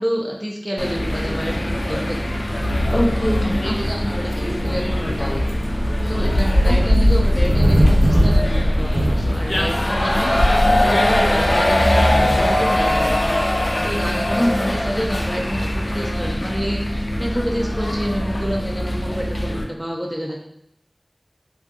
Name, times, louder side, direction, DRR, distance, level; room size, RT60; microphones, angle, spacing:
voice 1, 0.0-2.2 3.4-5.5 6.0-20.4, equal, 10° right, -2 dB, 0.4 m, -28 dB
sound 1, 0.8-19.6, left 1 dB, 80° left, 0.3 m, -22 dB
sound 2, 2.6-12.8, equal, 80° right, 1.3 m, -20 dB
voice 2, 2.9-4.1 6.6-7.1 14.3-14.9, equal, 35° left, -3 dB, 0.6 m, -24 dB
sound 3, 4.4-16.0, equal, 50° right, 0.8 m, -30 dB
2.5 x 2.5 x 2.3 m, 0.76 s
wide cardioid pair, 45°, 0 cm